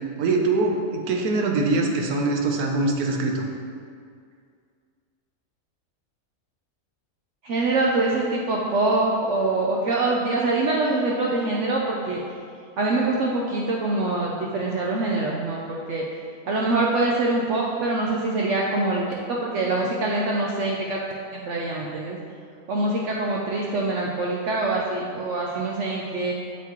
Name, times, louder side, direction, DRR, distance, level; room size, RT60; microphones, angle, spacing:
voice 1, 0.2-3.4, right 3 dB, 85° right, 1 dB, 1.3 m, -23 dB
voice 2, 7.4-12.2 12.8-16.0 16.5-21.0 21.3-22.2 22.7-26.3, right 2 dB, 65° right, -3 dB, 0.9 m, -24 dB
7.2 x 5.7 x 3.0 m, 2.2 s
omnidirectional pair, 1.5 m